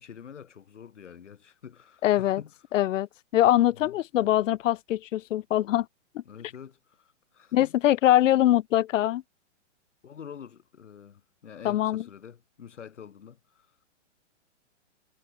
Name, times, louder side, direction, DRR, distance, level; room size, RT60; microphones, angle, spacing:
voice 1, 0.0-2.5 3.8-3.9 6.2-7.7 10.0-13.7, left 8 dB, 70° left, 4.8 m, -46 dB
voice 2, 2.0-2.4 2.7-3.1 3.3-5.9 6.1-6.2 7.5-9.2 11.6-12.0, left 13 dB, 85° left, 0.5 m, -23 dB
hypercardioid pair, 180°, 37 cm